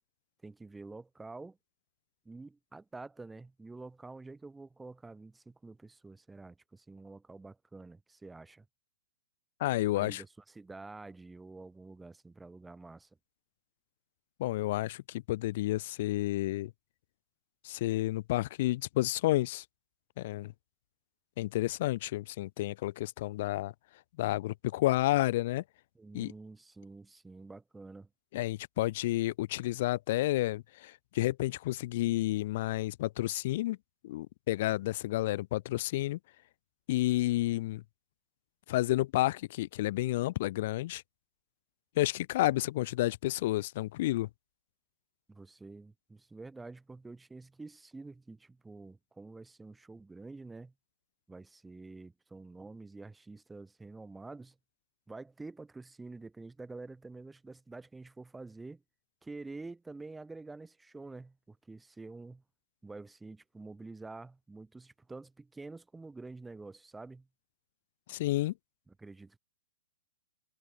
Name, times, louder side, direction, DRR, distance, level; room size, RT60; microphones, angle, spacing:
voice 1, 0.4-1.6 2.3-8.7 9.9-13.1 26.0-28.1 45.3-50.7 51.3-54.6 55.1-58.8 59.2-62.4 62.8-67.3 68.9-69.4, right 3 dB, 5° right, 3.9 m, -48 dB
voice 2, 9.6-10.2 14.4-16.7 17.6-19.6 20.2-20.5 21.4-23.7 24.2-25.6 26.1-26.3 28.3-33.8 34.0-36.2 36.9-37.8 38.7-41.0 42.0-44.3 68.1-68.5, left 16 dB, 35° left, 0.3 m, -30 dB
hypercardioid pair, 175°, 0 cm